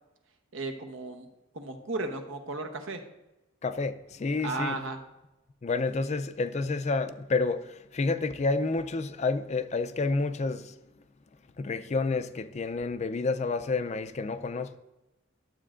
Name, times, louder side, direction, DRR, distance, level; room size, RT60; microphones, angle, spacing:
voice 1, 0.5-1.3 1.5-3.0 4.4-5.0, right 3 dB, 80° right, 0.9 m, -34 dB
voice 2, 3.6-4.8 5.6-10.7 11.6-14.8, left 3 dB, 35° left, 0.4 m, -29 dB
12.0 x 7.6 x 2.5 m
head